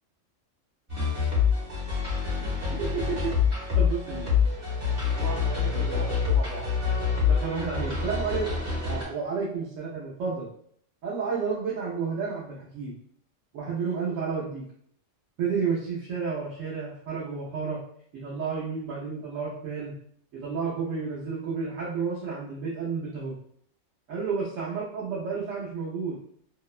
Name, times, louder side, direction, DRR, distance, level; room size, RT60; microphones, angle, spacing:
sound 1, 0.9-9.0, left 6 dB, 50° right, 1.2 m, -26 dB
voice 1, 2.9-3.3 3.8-4.2 5.1-6.7 7.3-8.5 8.8-10.5 11.0-12.9 13.5-14.6 15.4-17.8 18.1-19.9 20.4-23.3 24.1-26.2, right 5 dB, 85° right, -8 dB, 1.1 m, -31 dB
2.8 x 2.1 x 2.4 m, 0.64 s
omnidirectional pair, 1.3 m